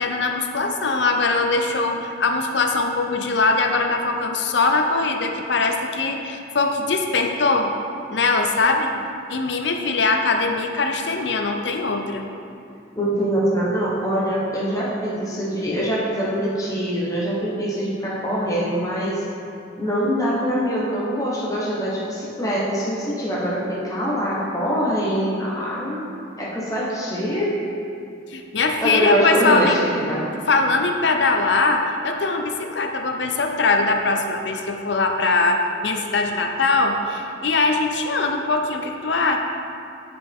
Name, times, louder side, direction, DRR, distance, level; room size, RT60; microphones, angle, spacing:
voice 1, 0.0-7.7 8.1-8.9 9.3-12.3 28.3-29.8 30.5-39.4, left 3 dB, 65° left, 4 dB, 0.7 m, -21 dB
voice 2, 12.9-19.2 19.8-26.1 26.4-27.6 28.8-30.3, equal, 20° left, -6 dB, 1.1 m, -24 dB
10.0 x 5.1 x 3.7 m, 2.6 s
head